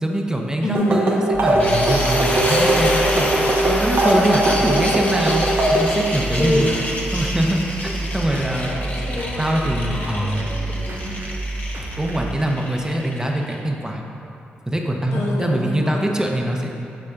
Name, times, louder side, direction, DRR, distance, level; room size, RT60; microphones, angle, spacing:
voice 1, 0.0-5.4 5.7-6.7 7.1-8.9 9.4-10.4 12.0-14.0 14.7-16.7, right 1 dB, 15° right, 1 dB, 0.8 m, -23 dB
voice 2, 0.6-1.0 6.3-6.9 8.7-11.2 15.1-16.0, left 1 dB, 65° left, -3 dB, 1.0 m, -27 dB
sound 1, 0.7-5.9, right 1 dB, 60° right, 0.9 m, -20 dB
sound 2, 1.3-12.3, right 2 dB, 45° right, 0.4 m, -30 dB
sound 3, 1.6-13.6, left 1 dB, 40° left, 1.1 m, -27 dB
6.9 x 6.1 x 2.5 m, 2.6 s
hypercardioid pair, 40°, 5 cm